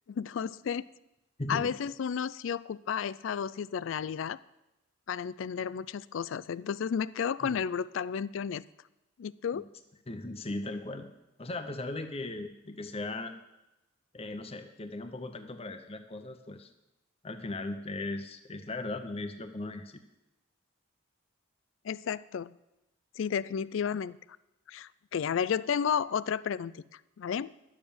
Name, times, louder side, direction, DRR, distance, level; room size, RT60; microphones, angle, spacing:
voice 1, 0.1-0.9 1.5-4.4 5.1-8.6 9.2-9.7 21.8-22.5 23.2-24.2 24.7-26.8 27.2-27.5, left 7 dB, 65° left, 19 dB, 0.4 m, -32 dB
voice 2, 1.4-1.8 7.4-7.6 9.5-9.6 10.1-11.1 11.4-13.3 14.1-16.7 17.2-20.0, left 2 dB, 30° left, 7 dB, 0.7 m, -38 dB
11.0 x 7.3 x 7.0 m, 0.92 s
head